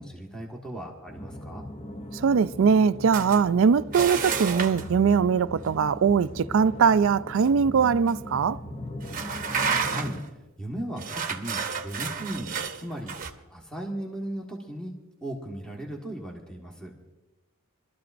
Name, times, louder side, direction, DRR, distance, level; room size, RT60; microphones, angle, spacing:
voice 1, 0.0-1.6 9.8-10.2 10.6-14.9 15.2-16.9, right 1 dB, 5° left, 1.4 m, -37 dB
sound 1, 1.1-10.2, equal, 30° left, 0.7 m, -39 dB
voice 2, 2.1-8.6, right 6 dB, 65° right, 0.4 m, -21 dB
sound 2, 3.1-3.4 3.9-4.9 7.5-7.6 8.1-8.2 9.0-10.3 11.0-13.3, right 6 dB, 40° right, 0.9 m, -30 dB
23.5 x 13.0 x 2.6 m
head